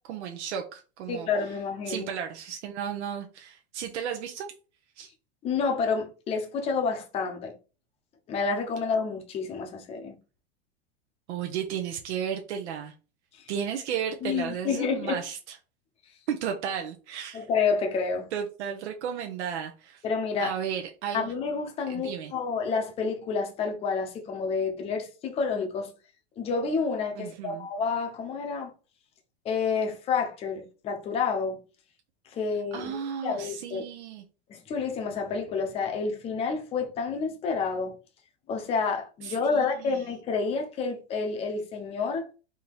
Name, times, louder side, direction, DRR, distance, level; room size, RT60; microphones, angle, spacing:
voice 1, 0.1-1.3 1.9-4.5 5.0-5.1 11.3-12.9 13.5-15.5 16.3-17.5 18.3-20.0 20.4-21.3 21.9-22.3 27.1-27.7 32.7-34.2 39.2-40.0, right 8 dB, 85° right, 0.9 m, -34 dB
voice 2, 1.1-2.1 5.4-7.6 8.3-10.2 13.3-13.5 14.2-15.2 17.3-18.3 20.0-20.5 21.1-25.9 26.4-28.7 29.4-31.6 32.3-32.9 33.2-33.8 34.5-38.0 38.5-42.3, left 5 dB, 20° left, 0.6 m, -29 dB
3.6 x 2.8 x 4.5 m
supercardioid pair, 160°, 33 cm